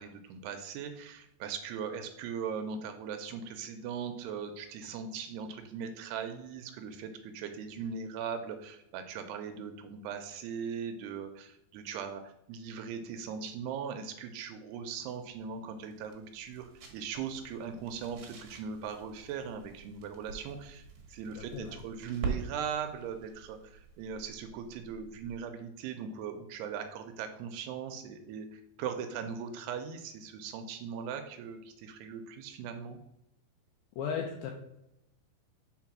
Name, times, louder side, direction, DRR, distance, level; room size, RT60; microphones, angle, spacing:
voice 1, 0.0-33.0, right 6 dB, 80° right, 7 dB, 2.5 m, -39 dB
sound 1, 14.8-25.5, right 4 dB, 60° right, 2.0 m, -45 dB
voice 2, 21.3-21.8 34.0-34.5, left 7 dB, 80° left, 2 dB, 2.1 m, -36 dB
5.3 x 4.9 x 5.9 m, 0.85 s
omnidirectional pair, 5.0 m